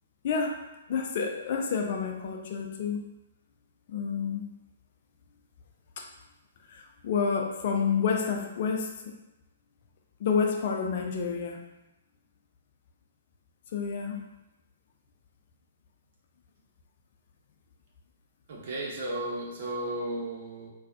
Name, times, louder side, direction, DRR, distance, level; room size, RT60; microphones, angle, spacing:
voice 1, 0.2-0.6 0.9-3.0 3.9-4.5 6.0-6.1 6.7-8.9 10.2-11.6 13.7-14.2, left 6 dB, 45° left, 2 dB, 0.5 m, -29 dB
voice 2, 18.5-20.7, right 1 dB, 50° right, -3 dB, 1.0 m, -34 dB
3.9 x 2.4 x 2.7 m, 0.97 s
figure-of-eight pair, 120°, 0 cm